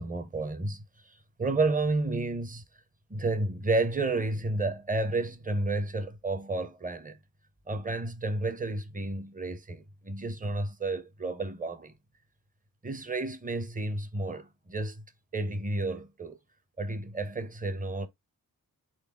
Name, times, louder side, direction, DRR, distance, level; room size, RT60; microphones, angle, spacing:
voice 1, 0.0-2.6 3.1-7.2 7.7-11.9 12.8-15.0 15.3-16.4 16.8-18.1, right 2 dB, 25° right, 0.7 m, -31 dB
4.0 x 3.5 x 3.5 m
wide cardioid pair, 100°, 36 cm